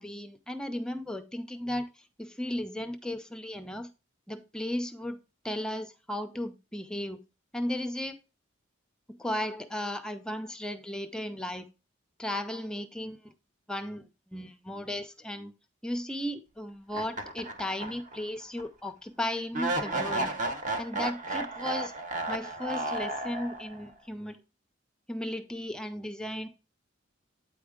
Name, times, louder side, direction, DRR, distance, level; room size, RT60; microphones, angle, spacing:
voice 1, 0.0-3.9 4.3-5.2 5.4-7.2 7.5-8.2 9.1-11.7 12.2-13.3 13.7-15.5 15.8-20.3 20.8-21.9 22.3-24.4 25.1-26.5, left 1 dB, 5° left, 0.4 m, -35 dB
sound 1, 16.9-18.2 18.6-18.7 19.5-23.8, right 2 dB, 40° right, 0.8 m, -33 dB
8.6 x 4.5 x 3.6 m
head